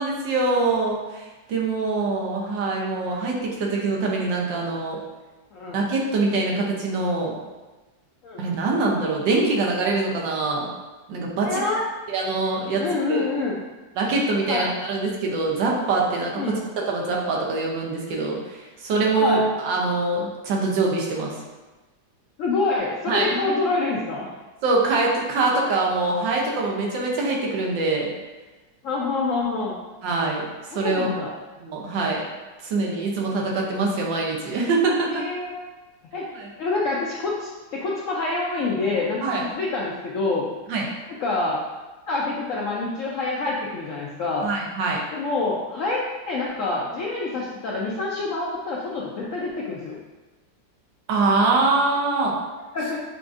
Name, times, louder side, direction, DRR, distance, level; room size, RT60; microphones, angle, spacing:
voice 1, 0.0-5.0 5.7-7.4 8.4-10.7 11.1-11.6 12.1-12.8 13.1-13.2 14.0-21.4 23.1-23.5 24.6-28.1 30.0-30.4 30.7-31.1 31.6-32.2 32.6-35.2 36.3-36.5 39.2-39.4 40.7-40.9 44.4-45.0 51.1-52.3, right 3 dB, 85° right, -2 dB, 1.5 m, -24 dB
voice 2, 11.4-11.8 12.8-13.6 14.5-14.7 16.4-16.6 19.2-19.4 22.4-24.3 28.8-29.8 30.7-31.3 35.1-35.6 36.1-36.3 36.6-40.5 41.2-41.6 42.1-44.5 45.1-46.0 46.3-50.0 52.7-53.0, left 3 dB, 75° left, -4 dB, 0.7 m, -26 dB
7.1 x 2.6 x 2.5 m, 1.2 s
omnidirectional pair, 1.9 m